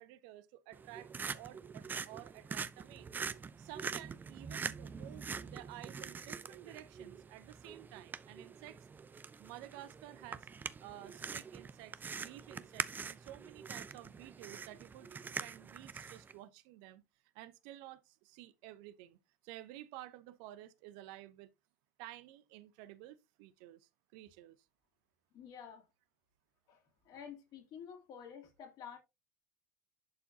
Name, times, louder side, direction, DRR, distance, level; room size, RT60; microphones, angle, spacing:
voice 1, 0.0-3.1 3.6-8.8 9.4-10.5 10.8-15.1 15.4-17.0 17.3-19.2 19.4-21.5 22.0-24.6, right 15 dB, 60° right, 0.8 m, -52 dB
sound 1, 0.7-16.3, right 5 dB, 20° right, 0.6 m, -44 dB
voice 2, 25.3-25.8 26.7-29.0, left 7 dB, 50° left, 2.9 m, -50 dB
11.0 x 4.6 x 2.8 m
hypercardioid pair, 80°, 9 cm